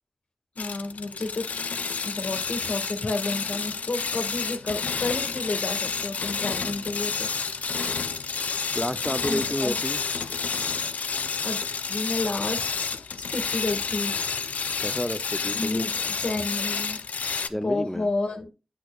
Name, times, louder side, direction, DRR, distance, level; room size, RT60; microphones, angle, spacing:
voice 1, 0.5-1.5 2.0-7.6 9.2-9.8 11.4-11.6 11.9-13.0 13.3-14.1 15.5-17.0 17.6-18.5, left 2 dB, 60° left, 1.6 m, -31 dB
sound 1, 0.6-17.5, left 5 dB, 80° left, 0.5 m, -30 dB
voice 2, 8.7-10.0 14.8-15.9 17.5-18.1, equal, 5° left, 0.6 m, -30 dB
8.8 x 7.8 x 2.3 m
wide cardioid pair, 70°, 2 cm